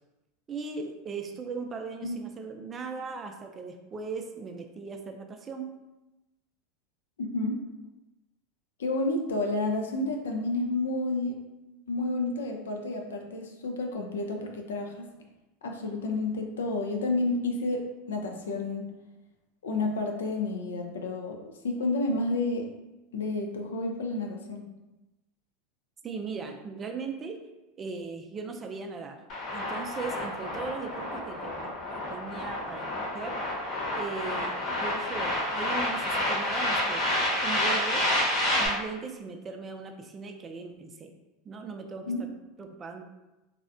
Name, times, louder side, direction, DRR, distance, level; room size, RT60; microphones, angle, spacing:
voice 1, 0.5-5.7 26.0-27.4 27.8-29.2 29.5-31.7 32.1-32.9 33.1-33.4 33.9-37.0 37.4-38.0 38.5-41.1 41.4-42.3 42.6-43.0, right 4 dB, 30° right, 4 dB, 0.3 m, -38 dB
voice 2, 7.2-7.6 8.8-11.4 11.9-15.1 15.6-18.9 19.6-22.7 23.1-24.6 42.1-42.2, left 2 dB, 90° left, 2 dB, 0.4 m, -30 dB
sound 1, 29.3-38.7, left 1 dB, 45° left, 0.9 m, -29 dB
2.7 x 2.1 x 2.6 m, 1.0 s
hypercardioid pair, 105°, 0 cm